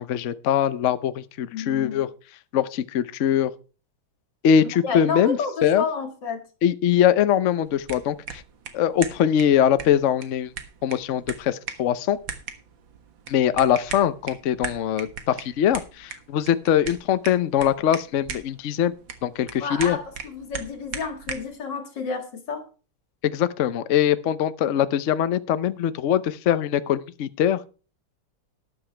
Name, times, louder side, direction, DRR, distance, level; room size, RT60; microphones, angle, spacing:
voice 1, 0.0-2.1 2.5-3.5 4.4-5.8 6.6-8.4 8.7-10.5 10.8-12.2 13.3-18.9 19.2-20.0 23.2-27.7, left 9 dB, 85° left, 0.6 m, -22 dB
voice 2, 1.5-2.0 4.8-6.4 19.6-22.6, left 5 dB, 55° left, 2.6 m, -30 dB
sound 1, 7.7-21.5, right 7 dB, 65° right, 2.1 m, -39 dB
12.5 x 11.0 x 3.4 m
omnidirectional pair, 2.3 m